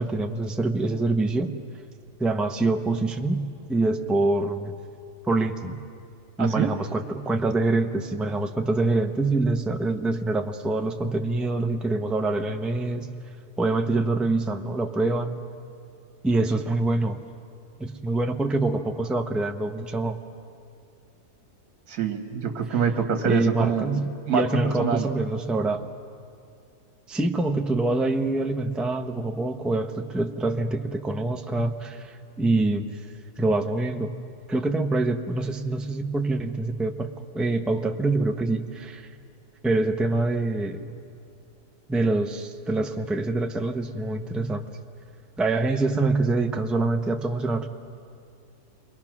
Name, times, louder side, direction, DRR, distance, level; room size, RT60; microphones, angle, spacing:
voice 1, 0.0-1.5 2.2-4.7 5.3-5.8 6.4-13.1 13.6-15.4 16.2-17.2 17.8-20.2 23.2-25.8 27.1-32.9 33.4-34.1 34.5-37.1 37.3-39.1 39.6-40.9 41.9-44.6 45.4-47.7, right 2 dB, ahead, 4 dB, 0.5 m, -25 dB
voice 2, 6.4-6.7 21.9-24.0 24.3-25.1, right 6 dB, 70° right, 5 dB, 1.9 m, -25 dB
28.5 x 23.0 x 6.0 m, 2.4 s
omnidirectional pair, 1.7 m